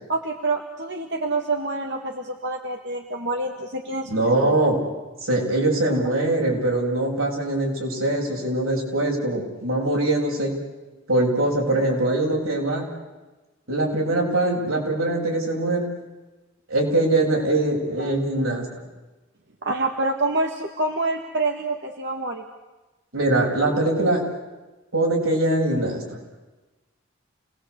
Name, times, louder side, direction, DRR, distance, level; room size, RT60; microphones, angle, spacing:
voice 1, 0.1-4.5 18.0-18.1 19.6-22.4, right 2 dB, 55° right, 3 dB, 1.8 m, -27 dB
voice 2, 4.1-4.8 5.2-10.6 11.1-12.9 13.7-15.9 16.7-18.7 23.1-24.2 24.9-26.2, right 2 dB, 85° right, -1 dB, 7.5 m, -22 dB
29.0 x 19.5 x 8.3 m, 1.1 s
head